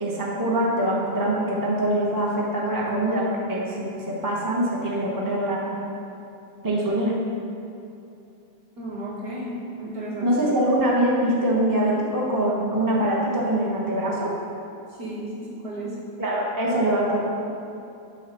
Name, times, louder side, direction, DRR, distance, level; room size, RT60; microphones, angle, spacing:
voice 1, 0.0-5.8 6.6-7.2 10.2-14.4 16.2-17.2, right 1 dB, 15° right, -5 dB, 0.7 m, -23 dB
voice 2, 8.8-9.5 9.8-10.3 14.9-16.0, right 1 dB, 45° right, -8 dB, 2.6 m, -33 dB
7.8 x 4.9 x 6.8 m, 2.7 s
omnidirectional pair, 2.2 m